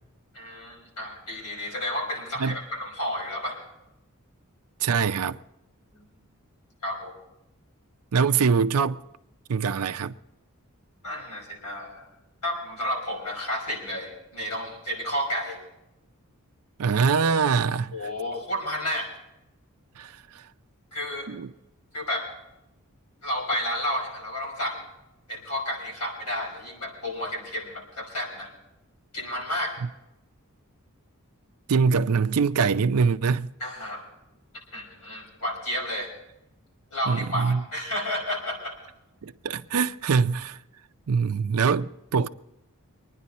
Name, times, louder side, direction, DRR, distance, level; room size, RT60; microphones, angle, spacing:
voice 1, 0.3-3.6 5.9-6.1 6.8-7.1 11.0-12.1 12.4-15.6 17.9-19.1 20.9-21.3 21.9-22.3 23.2-24.9 25.3-28.5 29.1-29.8 33.6-34.1 34.7-36.1 36.9-38.8, equal, 85° left, 5.8 m, -31 dB
voice 2, 4.8-5.4 8.1-9.0 9.5-10.1 16.8-17.9 20.0-20.4 21.3-21.5 31.7-33.5 37.1-37.6 39.2-40.6 41.1-42.3, right 5 dB, 75° right, 0.5 m, -23 dB
24.5 x 10.0 x 4.2 m
head